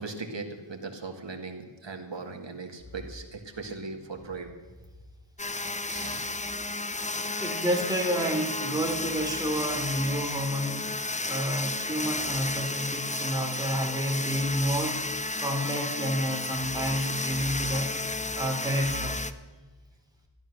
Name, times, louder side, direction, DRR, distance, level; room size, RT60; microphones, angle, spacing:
voice 1, 0.0-4.5 5.9-6.3, right 3 dB, 75° right, 4 dB, 2.0 m, -39 dB
sound 1, 5.4-19.3, left 2 dB, 15° left, 0.7 m, -32 dB
voice 2, 7.4-10.8 11.3-15.0 15.4-17.9 18.3-19.2, equal, 10° right, 0 dB, 3.3 m, -29 dB
13.5 x 11.5 x 6.5 m, 1.3 s
wide cardioid pair, 60°, 44 cm